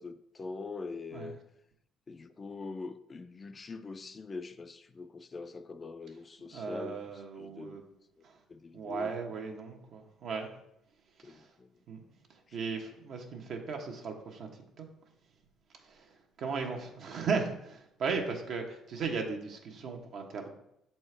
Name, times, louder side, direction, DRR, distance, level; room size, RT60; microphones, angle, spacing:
voice 1, 0.0-1.4 2.1-7.0 7.4-7.8 8.5-9.1 11.2-11.7 12.5-12.6, left 3 dB, 35° left, 0.4 m, -43 dB
voice 2, 6.5-7.8 8.2-8.4 8.7-10.5 11.2-11.5 11.9-12.0 12.3-14.5 14.8-14.9 15.8-20.5, right 5 dB, 65° right, 1.1 m, -36 dB
6.7 x 4.3 x 3.3 m
supercardioid pair, 75°, 0 cm